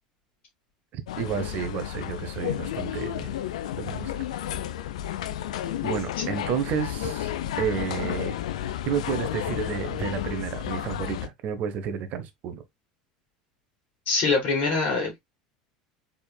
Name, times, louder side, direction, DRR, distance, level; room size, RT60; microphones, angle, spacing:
voice 1, 0.9-3.3 3.8-4.1 5.8-8.4 8.8-12.6, right 8 dB, 45° right, 0.8 m, -31 dB
sound 1, 1.1-11.3, left 11 dB, 70° left, 0.4 m, -32 dB
voice 2, 14.1-15.2, left 4 dB, 45° left, 2.5 m, -24 dB
4.4 x 3.6 x 2.3 m
figure-of-eight pair, 75°, 4 cm